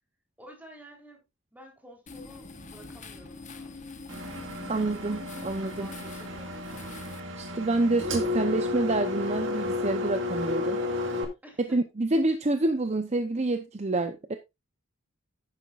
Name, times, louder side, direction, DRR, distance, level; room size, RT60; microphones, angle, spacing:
voice 1, 0.4-1.2 1.5-3.8 5.8-7.1 11.4-11.8, equal, 10° right, 3.6 m, -51 dB
sound 1, 2.1-7.2, left 3 dB, 35° left, 1.2 m, -44 dB
Engine, 4.1-11.2, left 2 dB, 65° right, 2.1 m, -32 dB
voice 2, 4.7-5.9 7.4-10.8 11.6-14.4, right 2 dB, 35° right, 0.7 m, -27 dB
11.0 x 9.6 x 2.4 m
head